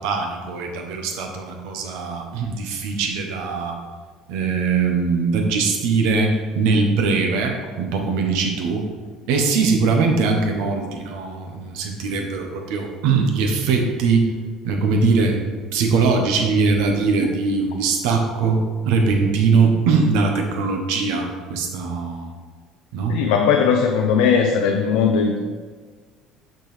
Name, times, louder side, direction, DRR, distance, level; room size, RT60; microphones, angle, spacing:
voice 1, 0.0-3.8 4.3-8.8 9.3-14.3 14.6-15.4 15.7-22.3 22.9-23.2, right 4 dB, 80° right, 3 dB, 1.1 m, -21 dB
voice 2, 23.1-25.4, left 6 dB, 80° left, 2 dB, 0.6 m, -18 dB
6.6 x 6.2 x 3.4 m, 1.5 s
supercardioid pair, 95°, 0 cm